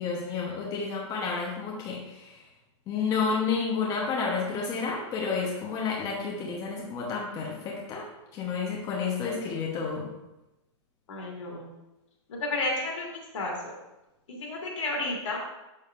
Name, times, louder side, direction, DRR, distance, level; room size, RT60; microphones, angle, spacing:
voice 1, 0.0-2.4 2.9-8.1 8.3-10.1, left 5 dB, 20° left, -3 dB, 0.9 m, -30 dB
voice 2, 11.1-11.7 12.3-13.7 14.3-15.4, left 2 dB, 75° left, -2 dB, 2.3 m, -32 dB
7.1 x 6.3 x 2.5 m, 0.97 s
hypercardioid pair, 155°, 16 cm